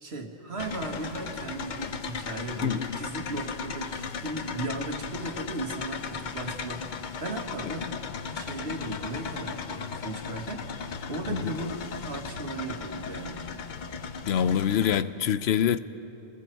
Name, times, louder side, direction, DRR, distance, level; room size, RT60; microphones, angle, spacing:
voice 1, 0.0-6.9 7.2-7.9 8.3-13.4, right 2 dB, 85° right, 2.0 m, -36 dB
sound 1, 0.6-15.0, left 5 dB, 50° left, 0.8 m, -36 dB
voice 2, 14.3-15.8, left 9 dB, 80° left, 0.9 m, -25 dB
29.5 x 20.5 x 4.6 m
omnidirectional pair, 1.0 m